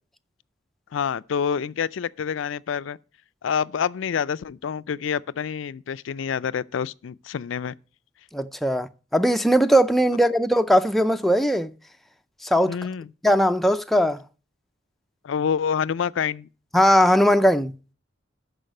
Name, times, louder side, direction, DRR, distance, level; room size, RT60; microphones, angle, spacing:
voice 1, 0.9-3.0 3.4-7.7 12.7-13.1 15.2-16.5, left 7 dB, 85° left, 0.4 m, -27 dB
voice 2, 8.3-11.7 12.4-12.8 13.2-14.2 16.7-17.7, equal, ahead, 0.4 m, -19 dB
12.5 x 4.9 x 6.4 m
head